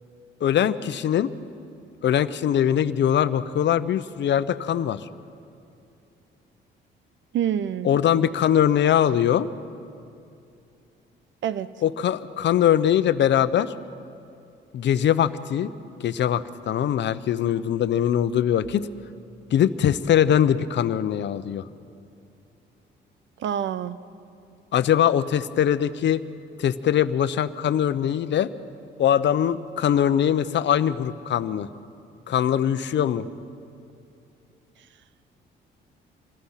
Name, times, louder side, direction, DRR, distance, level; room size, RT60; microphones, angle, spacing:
voice 1, 0.4-1.3 2.0-5.0 7.8-9.5 11.8-13.7 14.7-15.7 16.0-18.9 19.5-21.6 24.7-26.2 26.6-28.5 29.0-31.7 32.3-33.3, left 10 dB, 65° left, 13 dB, 0.8 m, -22 dB
voice 2, 7.3-7.9 11.4-11.7 23.4-24.0, right 9 dB, 70° right, 15 dB, 0.9 m, -26 dB
27.5 x 21.0 x 5.8 m, 2.6 s
cardioid pair, 90°, 20 cm